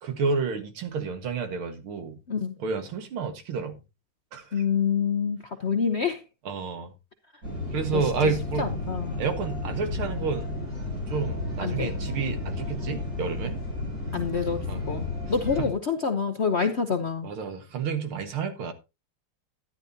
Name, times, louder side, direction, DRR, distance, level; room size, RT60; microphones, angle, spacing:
voice 1, 0.0-2.2 2.6-3.8 4.3-4.6 6.4-6.9 7.7-8.7 9.2-10.5 11.1-13.6 14.7-14.8 15.6-15.7 17.2-18.7, right 5 dB, 90° right, 2.5 m, -30 dB
voice 2, 4.5-6.2 7.9-8.0 8.6-9.2 11.6-11.9 14.1-17.3, left 6 dB, 55° left, 0.7 m, -27 dB
sound 1, 7.4-15.7, left 2 dB, 40° right, 7.3 m, -32 dB
13.0 x 10.5 x 2.8 m
omnidirectional pair, 2.2 m